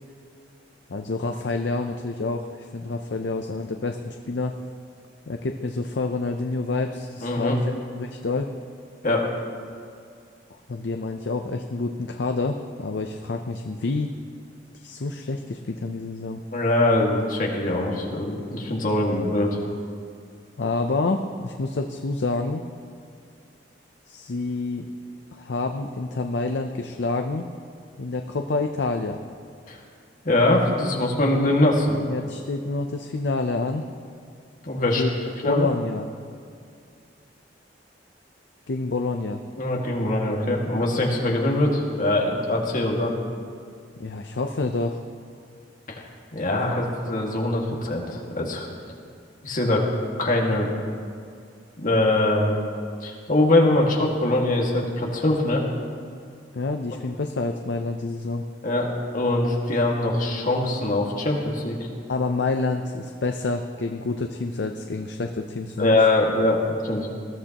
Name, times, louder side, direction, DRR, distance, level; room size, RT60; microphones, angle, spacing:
voice 1, 0.9-4.6 5.3-8.5 10.7-14.1 14.7-16.4 20.6-22.7 24.1-24.9 25.3-27.5 28.0-29.2 31.9-33.8 35.0-35.1 35.4-36.1 38.7-39.4 44.0-45.0 56.5-58.4 62.1-66.0, left 3 dB, 75° left, 5 dB, 0.6 m, -28 dB
voice 2, 7.2-7.6 9.0-9.3 16.5-19.6 29.7-29.8 30.2-32.0 34.6-35.0 35.4-35.7 39.6-43.1 45.9-46.0 46.3-48.7 49.4-49.9 50.2-50.7 51.8-52.6 53.0-55.6 58.6-61.8 65.8-67.1, left 1 dB, 50° left, -1 dB, 2.0 m, -22 dB
20.0 x 13.5 x 3.0 m, 2.3 s
head